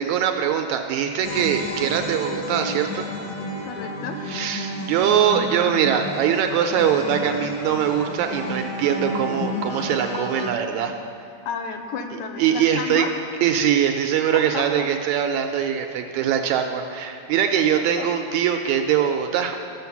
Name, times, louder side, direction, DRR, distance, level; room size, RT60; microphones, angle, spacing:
voice 1, 0.0-3.1 4.3-11.0 12.4-13.1 13.4-19.6, right 9 dB, 80° right, 5 dB, 1.8 m, -22 dB
sound 1, 1.2-10.5, left 2 dB, 60° left, 1.4 m, -31 dB
voice 2, 3.6-4.2 11.4-13.1 14.3-14.9 16.1-16.2 18.0-18.1, left 5 dB, 75° left, 5 dB, 2.1 m, -31 dB
13.5 x 6.5 x 7.0 m, 2.4 s
omnidirectional pair, 3.6 m